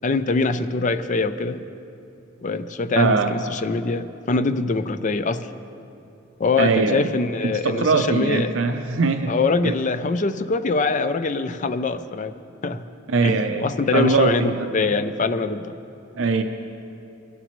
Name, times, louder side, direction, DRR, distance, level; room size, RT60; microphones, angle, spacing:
voice 1, 0.0-1.6 2.4-5.5 6.4-8.5 9.3-12.3 12.6-12.8 13.2-15.7, left 3 dB, 40° left, 11 dB, 0.5 m, -23 dB
voice 2, 3.0-3.4 6.6-7.1 7.4-9.3 9.6-9.7 13.1-14.9 16.1-16.4, right 4 dB, 70° right, 6 dB, 0.6 m, -21 dB
21.5 x 12.0 x 3.1 m, 2.7 s
head